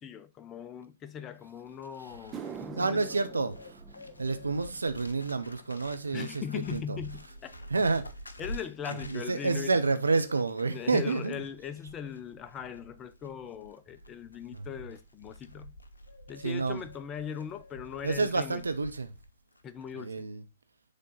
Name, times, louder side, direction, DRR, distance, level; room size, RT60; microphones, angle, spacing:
voice 1, 0.0-3.1 6.1-7.5 8.4-9.8 10.7-15.7 16.3-18.6 19.6-20.1, left 8 dB, 25° left, 0.6 m, -40 dB
Bird, 1.5-19.3 19.6-19.9, left 1 dB, 85° left, 0.7 m, -48 dB
sound 1, 1.6-1.7 2.1-10.6 10.9-11.4 12.1-12.2 15.0-15.1 16.7-16.8 17.0-17.2 17.5-18.0 18.4-18.5 19.1-19.2, right 7 dB, 20° right, 0.7 m, -49 dB
voice 2, 2.8-3.8 4.2-6.4 6.7-7.0 7.7-8.1 9.1-11.4 14.5-14.7 16.4-16.8 18.0-19.1 19.9-20.4, right 3 dB, 80° right, 0.7 m, -29 dB
6.6 x 3.8 x 4.0 m
figure-of-eight pair, 115°, 0 cm